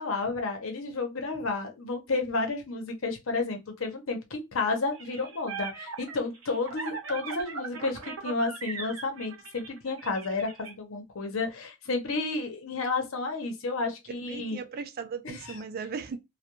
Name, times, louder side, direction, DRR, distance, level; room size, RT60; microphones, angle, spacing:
voice 1, 0.0-14.6 15.2-15.6, left 3 dB, 65° left, 0.8 m, -31 dB
sound 1, 4.9-10.7, right 4 dB, 75° right, 0.7 m, -39 dB
voice 2, 14.3-16.2, right 5 dB, 45° right, 0.4 m, -37 dB
2.3 x 2.2 x 2.9 m
head